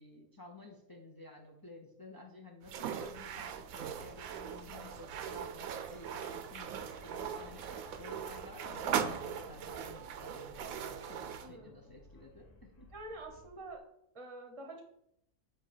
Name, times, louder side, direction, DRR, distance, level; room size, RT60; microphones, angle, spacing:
voice 1, 0.0-12.5 12.8-12.9, left 1 dB, 35° left, 1 dB, 0.3 m, -52 dB
sound 1, 2.6-11.5, right 8 dB, 70° right, 0.9 m, -40 dB
sound 2, 4.2-13.8, left 2 dB, 55° left, 1.8 m, -60 dB
voice 2, 11.4-11.8 12.9-13.8 14.1-14.8, right 2 dB, 25° right, 3 dB, 0.7 m, -47 dB
7.4 x 2.7 x 4.9 m, 0.76 s
omnidirectional pair, 1.6 m